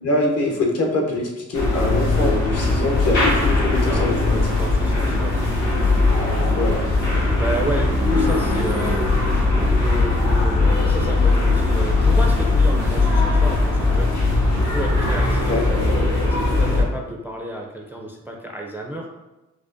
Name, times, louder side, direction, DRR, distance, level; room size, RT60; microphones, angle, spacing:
voice 1, 0.0-4.5 6.6-6.8 15.5-15.6, left 2 dB, 55° left, 1 dB, 0.8 m, -23 dB
sound 1, 1.5-16.8, left 2 dB, 70° left, 1.4 m, -19 dB
voice 2, 4.6-5.6 7.4-9.0 9.6-14.1 14.5-15.6 16.2-19.1, right 1 dB, 5° right, 0 dB, 0.4 m, -31 dB
4.8 x 2.1 x 2.5 m, 1.0 s
cardioid pair, 90°, 30 cm